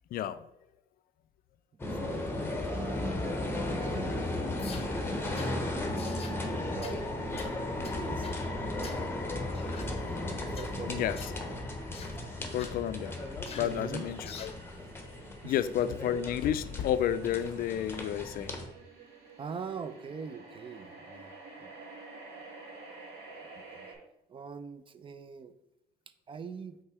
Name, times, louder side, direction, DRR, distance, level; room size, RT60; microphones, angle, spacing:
voice 1, 0.1-0.5 10.9-11.2 12.5-13.2 13.6-14.5 15.4-18.6, left 10 dB, 60° left, 13 dB, 0.4 m, -31 dB
sound 1, 1.8-18.7, left 1 dB, 15° left, 1.0 m, -35 dB
voice 2, 1.9-4.6 5.1-8.5 8.7-8.9 10.5-11.2 13.6-14.1 15.4-15.6 19.4-21.7 23.5-23.9 24.3-25.5 26.3-26.8, right 5 dB, 30° right, 11 dB, 0.5 m, -44 dB
sound 2, 4.6-4.9 5.4-5.5 6.0-6.4 6.8-7.0 7.4-7.5 7.8-8.4 8.8-9.0 9.5-9.9 10.5-10.7 11.2-11.4 11.9-12.1 12.6-12.8 13.5-13.7 14.2-14.6, left 6 dB, 35° left, 0.7 m, -47 dB
sound 3, 9.9-23.9, right 3 dB, 80° right, 2.2 m, -51 dB
5.4 x 3.8 x 4.7 m, 0.84 s
cardioid pair, 110°, 17 cm